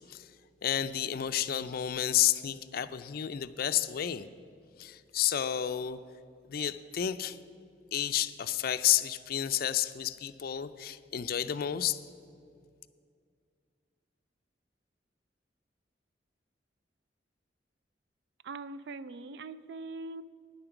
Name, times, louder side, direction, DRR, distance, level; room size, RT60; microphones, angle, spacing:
voice 1, 0.6-4.3 4.8-6.0 6.5-7.4 7.9-12.0, left 11 dB, 55° left, 13 dB, 0.4 m, -30 dB
voice 2, 18.4-20.2, right 3 dB, 65° right, 15 dB, 0.4 m, -41 dB
10.0 x 8.8 x 5.9 m, 2.3 s
head